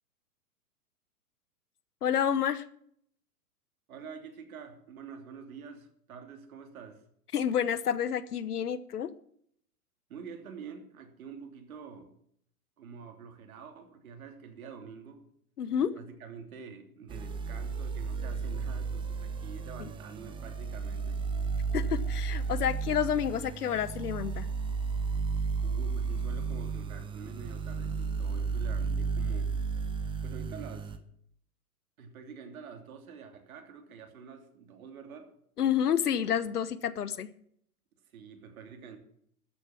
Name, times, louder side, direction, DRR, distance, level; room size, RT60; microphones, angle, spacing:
voice 1, 2.0-2.6 7.3-9.1 15.6-15.9 19.8-19.9 21.7-24.5 35.6-37.3, left 9 dB, 75° left, 16 dB, 1.1 m, -29 dB
voice 2, 3.9-7.0 10.1-12.1 12.8-15.3 15.8-21.3 25.6-29.6 30.2-30.9 32.0-35.3 38.1-39.0, right 6 dB, 65° right, 5 dB, 3.1 m, -47 dB
sound 1, 17.1-31.0, right 5 dB, 10° right, 0.7 m, -33 dB
13.5 x 6.9 x 8.5 m, 0.67 s
hypercardioid pair, 115°, 46 cm